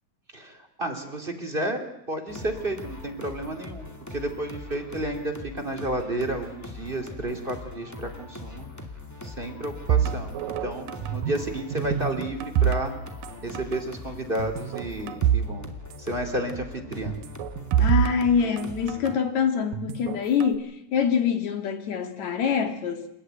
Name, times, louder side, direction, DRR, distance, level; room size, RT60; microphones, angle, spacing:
voice 1, 0.3-8.7 9.2-12.9 13.4-15.7 16.0-17.1, right 1 dB, 20° right, 2.2 m, -31 dB
sound 1, 2.3-19.2, left 3 dB, 5° left, 1.7 m, -41 dB
sound 2, 9.9-11.4 11.7-13.3 13.6-13.8 14.4-15.5 15.8-15.9 17.1-19.1 19.7-20.6, right 9 dB, 80° right, 2.6 m, -26 dB
voice 2, 17.8-23.1, left 7 dB, 60° left, 3.1 m, -25 dB
28.5 x 13.5 x 9.2 m
omnidirectional pair, 3.9 m